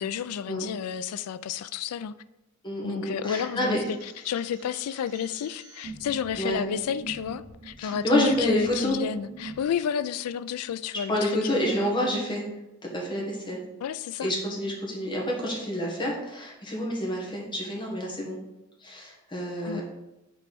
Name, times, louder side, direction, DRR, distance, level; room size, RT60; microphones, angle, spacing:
voice 1, 0.0-2.2 2.8-4.0 4.3-12.0 13.8-14.3 19.6-19.8, left 8 dB, 80° left, 0.3 m, -31 dB
voice 2, 2.6-3.8 6.4-6.6 7.8-8.9 11.1-12.4 12.8-13.6 14.2-18.4 18.8-19.8, equal, 20° left, 1.5 m, -28 dB
sound 1, 3.8-9.6, right 3 dB, 90° right, 1.1 m, -44 dB
5.3 x 4.2 x 4.2 m
head